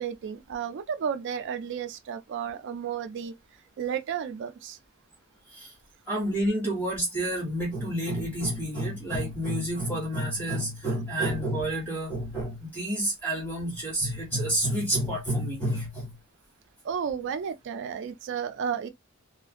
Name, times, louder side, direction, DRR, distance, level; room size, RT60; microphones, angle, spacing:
voice 1, 0.0-3.3 3.8-4.8 16.8-18.9, right 7 dB, 60° right, 0.3 m, -32 dB
voice 2, 6.1-16.1, right 1 dB, 10° left, 1.1 m, -29 dB
2.4 x 2.1 x 2.5 m
head